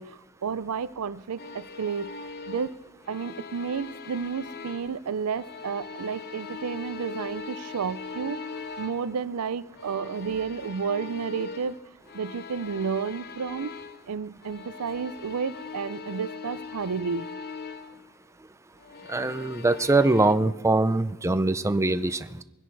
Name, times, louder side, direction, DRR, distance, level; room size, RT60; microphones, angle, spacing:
voice 1, 0.0-2.1 2.5-2.7 3.1-11.8 12.1-13.7 14.1-17.3, right 6 dB, 85° right, 0.5 m, -31 dB
sound 1, 1.4-5.0 5.3-9.2 9.7-14.1 14.4-18.0 18.8-20.4, left 4 dB, 45° left, 0.8 m, -41 dB
voice 2, 19.1-22.4, right 2 dB, 15° right, 0.5 m, -23 dB
23.0 x 10.5 x 4.7 m
head